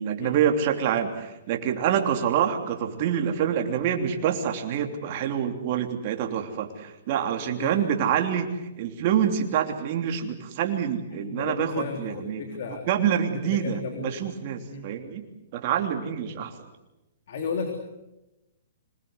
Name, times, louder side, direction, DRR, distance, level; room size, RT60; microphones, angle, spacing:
voice 1, 0.0-8.5 8.8-15.2 15.5-16.5, right 8 dB, 40° right, 4 dB, 3.1 m, -26 dB
voice 2, 11.2-12.9 13.5-14.2 14.7-14.9 16.3-16.4 17.3-17.7, left 5 dB, 60° left, 4 dB, 3.5 m, -34 dB
26.0 x 20.0 x 8.2 m, 0.98 s
hypercardioid pair, 155°, 0 cm